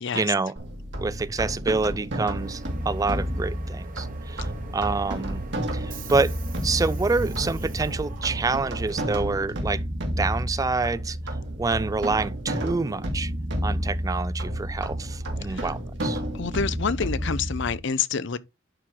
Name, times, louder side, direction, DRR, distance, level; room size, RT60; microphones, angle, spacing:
voice 1, 0.1-0.6 1.0-5.4 5.7-6.3 6.6-9.8 10.2-11.2 11.6-13.3 13.6-16.2, right 3 dB, 20° right, 0.3 m, -27 dB
sound 1, 0.6-17.8, equal, 65° right, 2.6 m, -31 dB
Subway metro underground, 2.4-9.8, right 1 dB, 45° right, 1.5 m, -40 dB
voice 2, 16.3-18.4, left 5 dB, 65° left, 0.6 m, -27 dB
11.0 x 4.4 x 3.8 m
head